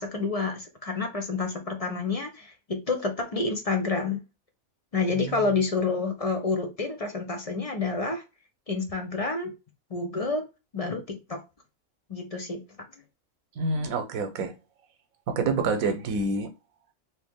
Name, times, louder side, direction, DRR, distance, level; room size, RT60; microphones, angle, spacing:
voice 1, 0.0-4.2 4.9-8.2 8.7-9.5 9.9-10.4 10.7-11.4 12.1-12.6, left 4 dB, 45° left, 0.5 m, -29 dB
voice 2, 5.1-5.5 13.6-14.5 15.3-16.5, right 3 dB, 85° right, 1.1 m, -27 dB
3.1 x 2.8 x 3.5 m
omnidirectional pair, 1.4 m